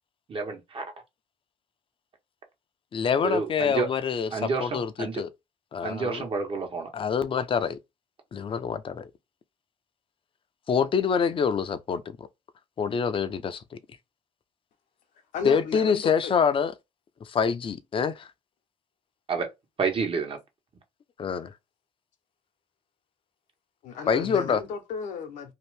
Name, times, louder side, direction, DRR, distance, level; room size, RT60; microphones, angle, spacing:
voice 1, 0.3-0.8 3.2-3.9 4.3-5.2 5.8-6.9 19.3-19.5 19.8-20.4, right 4 dB, 45° right, 1.2 m, -29 dB
voice 2, 2.9-5.3 5.7-6.2 6.9-7.8 8.3-9.1 10.7-12.3 12.8-13.6 15.4-16.7 17.3-18.3 21.2-21.5 24.1-24.6, left 6 dB, 45° left, 0.6 m, -26 dB
voice 3, 15.3-16.3 23.8-25.5, left 6 dB, 75° left, 0.9 m, -35 dB
2.8 x 2.4 x 3.3 m
supercardioid pair, 70°, 13 cm